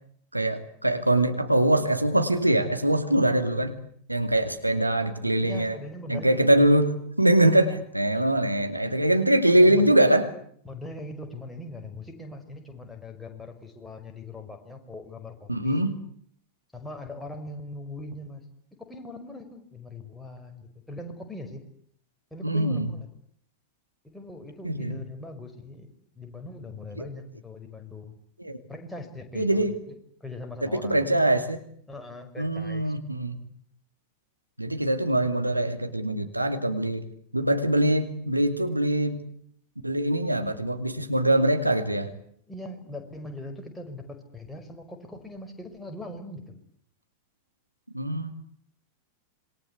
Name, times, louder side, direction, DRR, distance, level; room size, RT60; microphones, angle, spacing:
voice 1, 0.3-3.8 4.1-5.7 6.1-10.3 15.5-16.0 22.4-22.9 24.6-25.0 27.0-27.1 28.4-28.6 29.3-29.8 30.6-31.6 32.4-33.4 34.6-37.0 37.3-39.2 39.8-42.1 47.9-48.3, right 1 dB, 85° right, 7 dB, 2.6 m, -23 dB
voice 2, 5.4-6.8 7.7-7.8 9.5-10.0 10.6-15.9 16.7-18.4 18.8-21.6 22.3-23.0 24.0-25.9 26.2-28.2 28.7-29.7 30.2-31.1 31.9-32.9 42.5-46.6, left 2 dB, 5° left, 3 dB, 5.5 m, -40 dB
27.0 x 23.5 x 8.3 m, 0.63 s
figure-of-eight pair, 90°, 0 cm